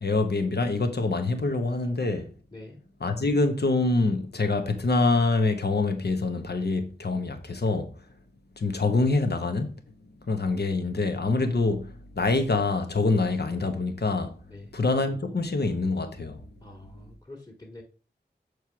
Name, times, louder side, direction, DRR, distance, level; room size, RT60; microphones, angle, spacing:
voice 1, 0.0-2.3 3.0-7.9 8.6-9.7 10.3-11.9 12.1-14.3 14.7-16.4, left 3 dB, 70° left, 1.1 m, -25 dB
voice 2, 2.5-2.8 14.5-14.8 16.6-17.8, left 1 dB, 20° left, 1.7 m, -46 dB
6.6 x 3.1 x 5.9 m
wide cardioid pair, 50°, 18 cm